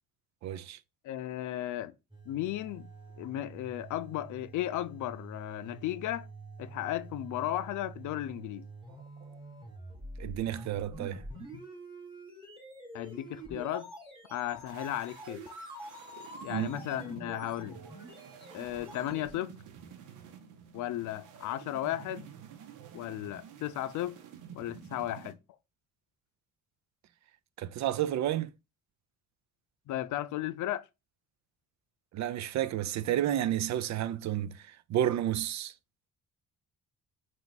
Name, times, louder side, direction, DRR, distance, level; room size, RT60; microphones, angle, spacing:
voice 1, 0.4-0.8 10.2-11.2 16.5-16.7 22.8-22.9 27.6-28.5 32.1-35.7, right 11 dB, 65° right, 0.5 m, -31 dB
voice 2, 1.0-1.9 2.3-2.9 3.2-6.3 6.6-8.7 12.9-13.9 14.3-15.4 16.4-17.8 18.5-19.6 20.7-22.3 22.9-24.2 24.5-25.4 29.9-30.9, left 13 dB, 75° left, 0.5 m, -35 dB
sound 1, 2.1-19.3, right 2 dB, 15° right, 2.2 m, -47 dB
sound 2, 14.7-25.3, right 8 dB, 90° right, 0.8 m, -50 dB
4.4 x 2.4 x 4.0 m
cardioid pair, 90°, 30 cm